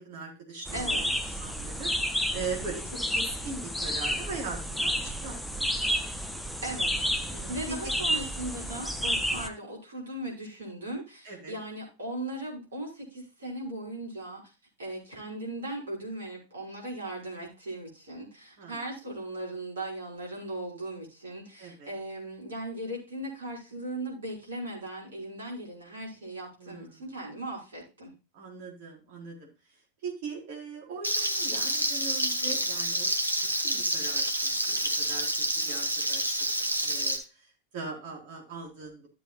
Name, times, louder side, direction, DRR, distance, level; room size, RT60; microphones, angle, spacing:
voice 1, 0.0-1.0 1.4-1.9 2.3-5.7 7.3-7.8 11.2-11.6 18.6-18.8 21.6-21.9 26.6-27.0 28.3-29.5 30.0-33.1 33.6-35.3 35.6-36.3 36.8-37.2 37.7-39.1, right 4 dB, 50° right, 0 dB, 4.4 m, -40 dB
sound 1, 0.7-9.5, equal, ahead, 0.9 m, -31 dB
voice 2, 0.7-1.4 6.6-6.9 7.5-14.4 14.8-28.1, right 1 dB, 70° right, -2 dB, 5.3 m, -38 dB
Frying (food), 31.0-37.2, right 1 dB, 85° right, 1.4 m, -28 dB
13.5 x 7.6 x 2.4 m, 0.30 s
figure-of-eight pair, 90°, 0 cm